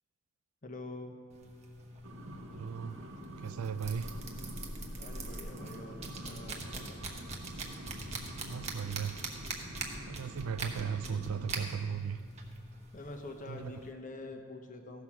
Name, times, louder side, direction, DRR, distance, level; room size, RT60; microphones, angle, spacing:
voice 1, 0.6-1.1 5.0-7.0 12.9-15.0, left 2 dB, 35° left, 4 dB, 0.9 m, -45 dB
sound 1, 1.3-13.9, right 2 dB, 30° right, 0.9 m, -43 dB
sound 2, 2.0-12.1, right 1 dB, 65° right, 0.9 m, -47 dB
voice 2, 2.5-3.0 3.4-4.1 8.4-9.2 10.1-12.2 13.5-13.7, right 7 dB, 85° right, 16 dB, 0.4 m, -36 dB
15.0 x 5.8 x 6.1 m, 2.4 s
head